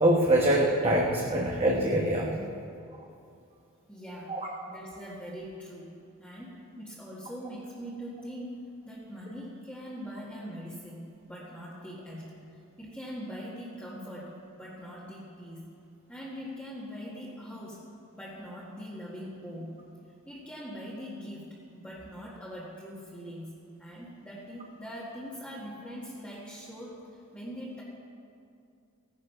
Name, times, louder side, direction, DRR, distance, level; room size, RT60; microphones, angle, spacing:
voice 1, 0.0-2.3 4.3-4.5, right 1 dB, 30° right, -2 dB, 1.1 m, -24 dB
voice 2, 3.9-4.4 4.7-5.9 6.2-11.0 11.3-12.4 12.8-15.6 16.1-17.8 18.1-19.8 20.3-23.5 23.8-27.0 27.3-27.8, equal, 5° left, -8 dB, 1.8 m, -42 dB
16.0 x 10.5 x 5.7 m, 2.5 s
head